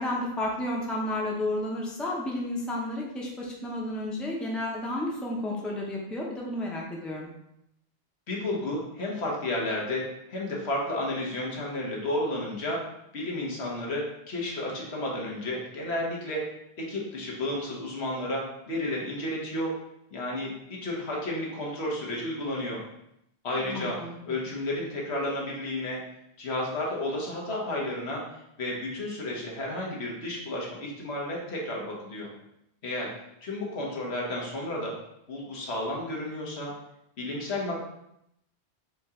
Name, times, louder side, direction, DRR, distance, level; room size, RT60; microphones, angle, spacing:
voice 1, 0.0-7.3 23.6-24.2, left 1 dB, ahead, -3 dB, 0.6 m, -32 dB
voice 2, 8.3-12.8 13.1-16.4 16.8-19.7 20.1-22.8 23.4-24.0 24.3-26.0 26.4-28.2 28.6-32.3 32.8-33.1 33.4-34.9 35.3-36.7 37.2-37.8, left 1 dB, 90° left, -3 dB, 1.4 m, -32 dB
4.5 x 2.8 x 3.6 m, 0.80 s
omnidirectional pair, 1.1 m